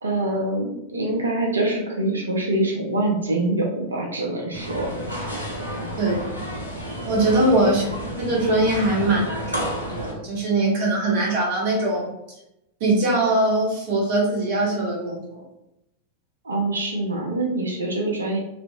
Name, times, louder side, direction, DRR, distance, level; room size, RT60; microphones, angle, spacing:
voice 1, 0.0-4.9 7.3-7.6 16.4-18.4, right 2 dB, 75° right, 0 dB, 0.6 m, -25 dB
sound 1, 4.5-10.1, equal, 85° left, 0.6 m, -31 dB
voice 2, 6.0-6.3 7.1-7.8 8.2-12.1 12.8-15.4, right 2 dB, 50° right, -3 dB, 1.0 m, -22 dB
2.9 x 2.5 x 2.2 m, 0.87 s
figure-of-eight pair, 90°, 0 cm